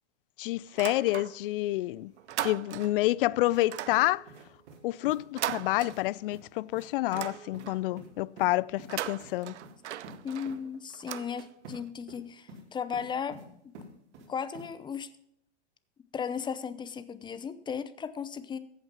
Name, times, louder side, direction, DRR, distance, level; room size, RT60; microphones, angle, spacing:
voice 1, 0.4-2.1 2.4-4.3 4.8-9.6, left 18 dB, 50° left, 0.5 m, -28 dB
sound 1, 0.7-1.6 1.9-3.1 3.6-6.5 6.8-7.9 8.7-11.9, right 12 dB, 75° right, 0.7 m, -39 dB
sound 2, 3.5-3.6 3.9-4.8 5.0-5.2 5.5-5.6 5.9-6.0 6.3-6.4 6.7-6.9 7.1-7.3 7.5-7.7 8.0-8.5 8.8-8.9 9.2-9.3 9.6-9.7 10.0-10.2 10.4-10.6 11.6-11.8 12.1-12.6 12.9-13.4 13.7-14.3 14.5-14.7, right 2 dB, 55° right, 4.2 m, -48 dB
voice 2, 10.2-13.4 13.6-13.7 14.3-15.1 16.1-18.6, left 7 dB, 15° left, 0.8 m, -36 dB
14.5 x 8.7 x 5.6 m
hypercardioid pair, 120°, 35 cm